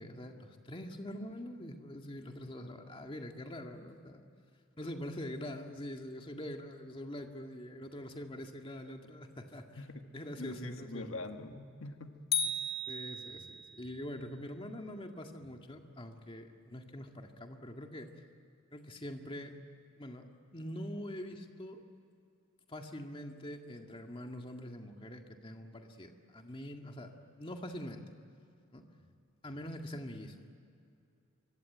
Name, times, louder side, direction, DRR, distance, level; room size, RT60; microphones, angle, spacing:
voice 1, 0.0-4.2 4.8-9.7 10.1-11.2 12.9-18.1 18.7-19.5 20.0-20.2 20.5-21.8 22.7-28.0 28.7-28.8 29.4-30.5, left 1 dB, 25° left, 3 dB, 1.9 m, -44 dB
voice 2, 10.4-12.8, left 2 dB, 70° left, 6 dB, 1.5 m, -44 dB
sound 1, 12.3-13.7, left 3 dB, 50° left, 2.1 m, -35 dB
24.5 x 24.0 x 9.2 m, 2.5 s
head